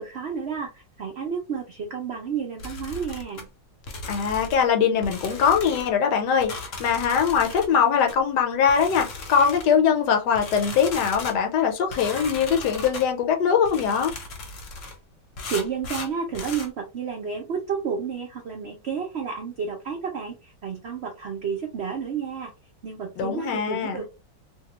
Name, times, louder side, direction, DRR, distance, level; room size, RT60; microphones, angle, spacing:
voice 1, 0.0-3.5 15.5-22.5 22.8-24.1, right 6 dB, 70° right, 0.6 m, -31 dB
sound 1, 2.6-3.4 3.9-4.7 5.0-5.9 6.4-7.7 8.1-8.2 8.7-9.7 10.3-11.4 11.9-13.1 13.6-15.0 15.4-16.7, left 3 dB, 55° left, 0.9 m, -37 dB
voice 2, 4.1-14.1 23.2-24.0, left 7 dB, 75° left, 1.2 m, -22 dB
2.8 x 2.2 x 2.9 m
omnidirectional pair, 1.9 m